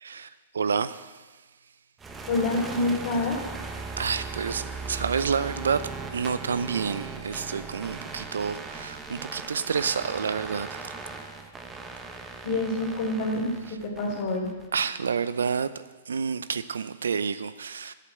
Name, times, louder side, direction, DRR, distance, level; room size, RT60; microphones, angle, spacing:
voice 1, 0.0-1.4 4.0-10.9 13.7-13.8 14.7-15.7 16.1-17.9, right 6 dB, 80° right, 0.5 m, -29 dB
sound 1, 2.0-14.8, right 4 dB, 15° right, 1.0 m, -38 dB
voice 2, 2.3-3.4 12.4-14.5, left 2 dB, 55° left, 3.2 m, -27 dB
8.2 x 7.4 x 8.2 m
hypercardioid pair, 120°, 0 cm